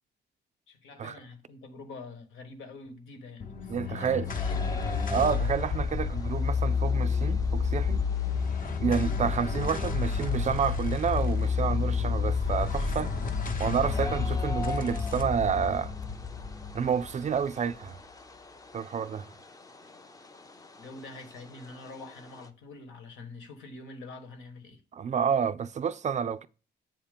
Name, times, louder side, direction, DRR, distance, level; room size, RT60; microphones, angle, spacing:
voice 1, 0.7-4.9 20.8-24.8, left 3 dB, 80° left, 1.4 m, -46 dB
sound 1, 3.4-18.0, left 5 dB, 45° left, 0.9 m, -30 dB
voice 2, 3.7-4.3 5.1-8.1 8.8-13.1 13.6-15.9 16.7-18.0 18.7-19.3 24.9-26.5, right 7 dB, 35° right, 0.4 m, -29 dB
sound 2, 4.2-22.5, left 3 dB, 15° left, 0.6 m, -46 dB
7.8 x 2.9 x 5.1 m
cardioid pair, 90°, 20 cm